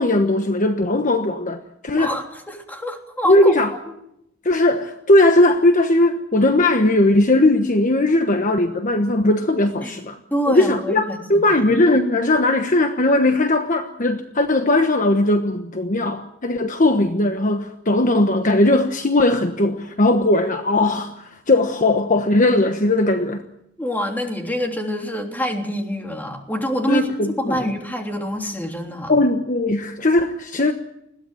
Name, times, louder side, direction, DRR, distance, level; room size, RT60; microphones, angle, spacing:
voice 1, 0.0-2.1 3.3-3.7 4.4-10.2 10.5-23.4 26.9-27.7 29.1-30.7, left 2 dB, 40° left, 7 dB, 1.2 m, -18 dB
voice 2, 1.9-3.5 9.8-10.0 10.3-11.5 23.8-29.1, equal, 10° left, 2 dB, 3.3 m, -26 dB
21.5 x 16.5 x 9.3 m, 0.79 s
head